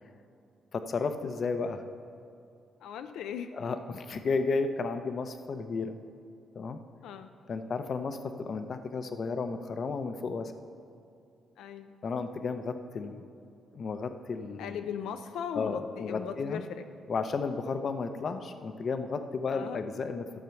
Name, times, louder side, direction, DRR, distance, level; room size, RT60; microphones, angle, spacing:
voice 1, 0.7-1.8 3.5-6.0 6.5-6.8 7.5-10.5 12.0-13.2 13.7-14.8 15.5-16.6 17.1-20.2, left 4 dB, 45° left, 8 dB, 0.6 m, -33 dB
voice 2, 2.8-3.5 7.0-7.3 11.6-11.9 14.6-16.8 19.5-19.8, left 8 dB, 90° left, 8 dB, 0.4 m, -38 dB
12.5 x 6.6 x 5.8 m, 2.6 s
cardioid pair, 120°, 0 cm